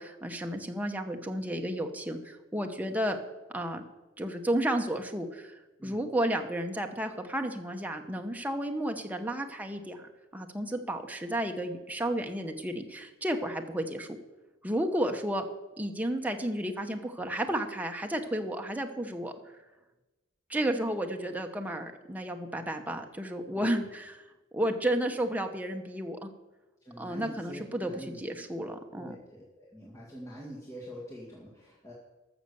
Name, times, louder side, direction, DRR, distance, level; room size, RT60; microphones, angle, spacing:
voice 1, 0.0-3.2 3.5-3.8 4.2-14.2 14.6-15.5 15.8-19.3 20.5-24.2 24.5-26.3 27.0-29.1, right 1 dB, 10° right, 4 dB, 1.0 m, -32 dB
voice 2, 26.8-28.2 28.6-31.9, equal, 15° left, -5 dB, 2.1 m, -45 dB
13.0 x 6.7 x 6.9 m, 1.1 s
head